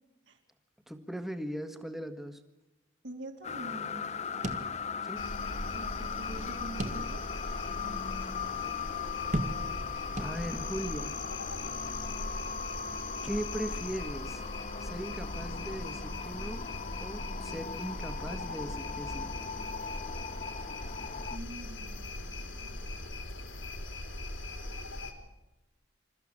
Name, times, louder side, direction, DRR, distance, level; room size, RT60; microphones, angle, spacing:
voice 1, 0.9-2.4 5.0-5.3 10.2-11.2 11.4-12.0 13.2-14.4 14.8-16.7 17.0-19.3, equal, ahead, 8 dB, 1.5 m, -39 dB
voice 2, 3.0-4.5 5.6-7.2 7.6-8.5 21.3-23.0, right 1 dB, 65° right, 3 dB, 3.3 m, -47 dB
sound 1, 3.4-21.4, left 6 dB, 35° left, 0.7 m, -39 dB
sound 2, 4.4-5.3 5.6-5.7 6.8-7.4 8.0-8.1 9.3-9.9 10.2-10.8, right 1 dB, 40° right, 1.5 m, -36 dB
sound 3, 5.2-25.1, left 2 dB, 80° left, 3.7 m, -40 dB
27.5 x 14.0 x 8.7 m, 1.0 s
head